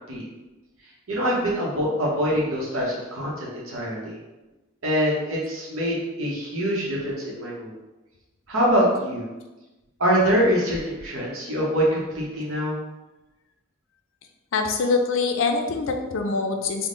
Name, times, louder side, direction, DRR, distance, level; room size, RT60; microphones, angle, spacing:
voice 1, 1.1-4.2 4.8-7.7 8.5-9.3 10.0-12.8, equal, 90° right, -5 dB, 0.8 m, -24 dB
voice 2, 14.5-16.9, left 4 dB, 70° left, 5 dB, 0.4 m, -24 dB
3.6 x 2.1 x 3.7 m, 1.1 s
head